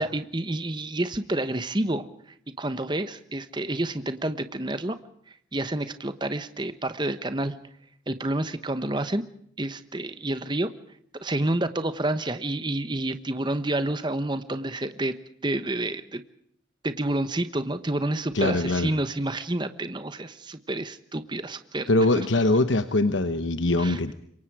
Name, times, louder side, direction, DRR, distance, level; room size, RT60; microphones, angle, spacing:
voice 1, 0.0-2.0 2.6-5.0 5.5-7.5 8.1-9.2 9.6-10.7 11.2-15.1 15.4-16.2 16.8-21.9 22.1-22.2 23.8-24.0, right 1 dB, 25° right, 11 dB, 1.1 m, -29 dB
voice 2, 18.3-18.9 21.9-24.1, left 2 dB, 75° left, 10 dB, 1.1 m, -22 dB
27.0 x 23.0 x 4.9 m, 0.67 s
head